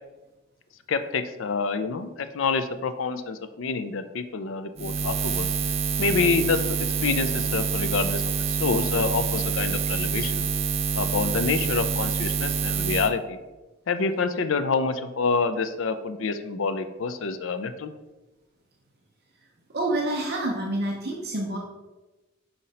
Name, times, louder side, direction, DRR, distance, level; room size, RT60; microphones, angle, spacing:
voice 1, 0.9-5.5 6.0-10.4 11.0-13.4 13.9-17.9, left 4 dB, 70° left, 10 dB, 0.5 m, -27 dB
Buzz, 4.8-13.1, right 6 dB, 30° right, 0.4 m, -26 dB
voice 2, 19.7-21.6, right 1 dB, 50° right, -1 dB, 0.8 m, -27 dB
5.7 x 5.2 x 4.1 m, 1.1 s
head